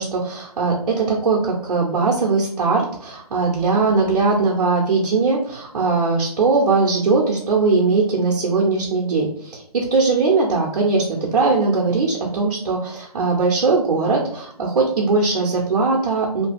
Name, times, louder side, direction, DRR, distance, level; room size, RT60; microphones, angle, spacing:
voice 1, 0.0-16.5, right 4 dB, 70° right, -3 dB, 0.9 m, -20 dB
2.9 x 2.3 x 3.4 m, 0.69 s
hypercardioid pair, 150°, 20 cm